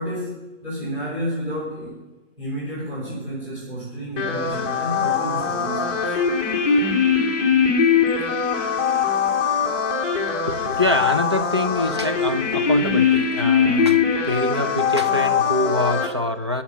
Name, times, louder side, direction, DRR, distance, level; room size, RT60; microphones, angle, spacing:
voice 1, 0.0-2.1 2.4-6.1, equal, 5° right, -8 dB, 5.1 m, -31 dB
sound 1, 4.2-16.1, left 6 dB, 10° left, 1.5 m, -21 dB
voice 2, 10.3-16.6, left 1 dB, 25° right, 7 dB, 0.5 m, -25 dB
20.0 x 7.1 x 6.8 m, 1.1 s
hypercardioid pair, 170°, 37 cm